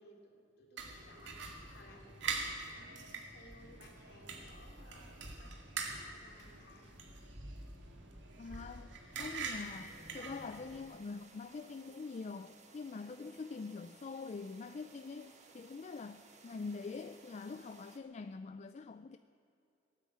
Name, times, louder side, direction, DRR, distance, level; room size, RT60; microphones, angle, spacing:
voice 1, 0.0-6.9, left 1 dB, 60° left, 1 dB, 2.9 m, -60 dB
sound 1, 0.8-10.8, right 4 dB, 70° right, 2.1 m, -44 dB
voice 2, 8.4-19.2, left 4 dB, 35° left, 10 dB, 0.4 m, -45 dB
sound 2, 9.1-18.0, right 3 dB, 40° right, 1.5 m, -60 dB
18.5 x 9.1 x 8.6 m, 2.7 s
head